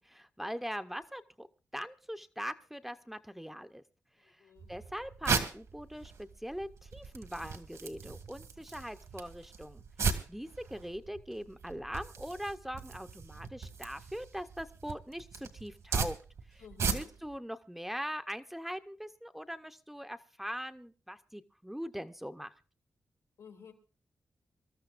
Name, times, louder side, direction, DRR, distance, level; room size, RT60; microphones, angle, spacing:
voice 1, 0.0-1.5 1.7-3.8 4.7-9.8 10.3-16.2 16.5-16.6 16.9-22.5, equal, 5° right, 9 dB, 0.6 m, -41 dB
voice 2, 4.2-4.7 16.6-17.1 23.4-23.7, left 6 dB, 90° left, 3 dB, 2.6 m, -53 dB
sound 1, 4.6-17.4, right 5 dB, 75° right, 1.8 m, -38 dB
25.5 x 13.0 x 2.5 m, 0.34 s
wide cardioid pair, 125°, 5 cm